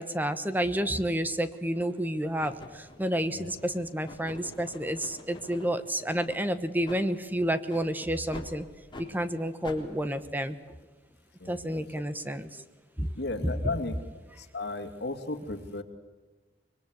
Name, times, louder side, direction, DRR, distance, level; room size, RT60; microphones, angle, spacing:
voice 1, 0.0-8.6 9.0-10.6 11.5-12.6 13.0-13.1 13.4-13.6, right 1 dB, 10° right, 11 dB, 1.1 m, -30 dB
sound 1, 0.9-1.1 1.7-2.0 2.4-5.8 6.2-6.4 6.8-7.0 7.7-7.9 8.3-8.5 8.9-9.1 9.6-9.8, left 2 dB, 25° left, 3.9 m, -46 dB
voice 2, 11.4-11.8 13.2-13.9 14.4-15.8, left 2 dB, 65° left, 6 dB, 2.6 m, -35 dB
25.0 x 22.5 x 8.2 m, 1.3 s
head